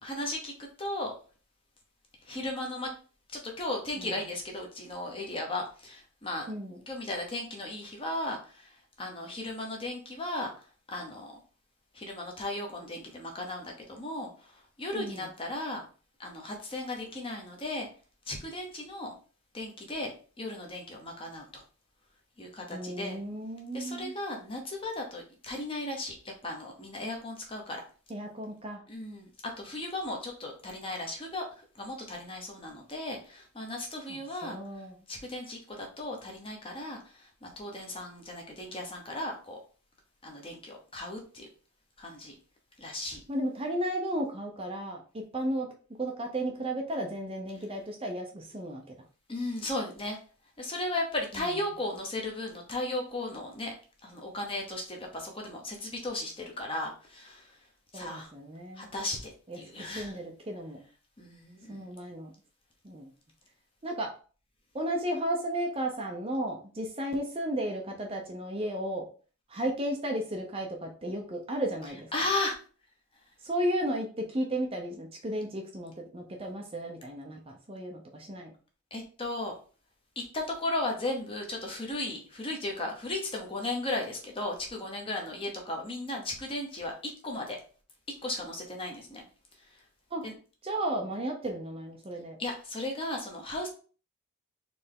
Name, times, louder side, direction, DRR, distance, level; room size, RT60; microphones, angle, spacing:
voice 1, 0.0-1.1 2.3-2.9 3.3-6.5 6.9-8.7 9.0-10.5 10.9-11.3 11.9-14.3 14.8-15.8 16.2-17.9 18.3-19.1 19.5-20.1 20.4-21.6 22.4-23.2 23.7-26.1 26.4-27.8 28.9-29.3 29.6-31.4 31.8-34.6 35.1-37.0 37.4-39.6 40.2-41.5 42.0-42.3 42.8-43.2 49.3-50.2 50.6-53.7 54.0-57.4 57.9-58.3 58.8-60.1 61.2-61.9 72.1-72.6 78.9-79.5 80.3-87.6 88.2-89.2 90.2-90.3 92.4-93.7, left 2 dB, 25° left, 1 dB, 1.0 m, -36 dB
voice 2, 6.5-6.8 14.9-15.3 22.7-24.2 28.1-28.8 34.1-35.0 43.3-45.0 45.3-45.7 46.0-49.0 51.3-51.6 57.9-58.9 59.5-60.8 61.7-62.3 62.8-63.1 63.8-64.1 64.7-69.1 69.5-72.1 73.4-78.5 90.1-90.2 90.6-92.4, right 1 dB, 25° right, 2 dB, 0.6 m, -34 dB
4.3 x 3.3 x 3.5 m, 0.38 s
head